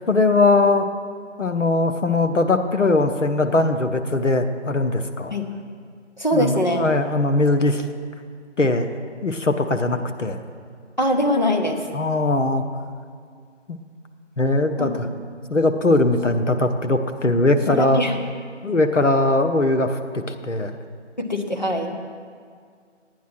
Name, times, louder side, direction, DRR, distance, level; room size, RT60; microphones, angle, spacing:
voice 1, 0.1-0.9 1.4-5.3 6.3-7.8 8.6-8.9 9.2-10.4 11.9-12.6 13.7-13.8 14.4-15.1 15.5-18.0 18.6-20.8, left 2 dB, 75° left, 7 dB, 1.0 m, -20 dB
voice 2, 6.2-6.8 11.0-11.9 14.8-14.9 17.6-18.2 21.2-21.9, equal, 35° left, 2 dB, 0.9 m, -22 dB
11.0 x 9.3 x 6.0 m, 2.1 s
figure-of-eight pair, 170°, 37 cm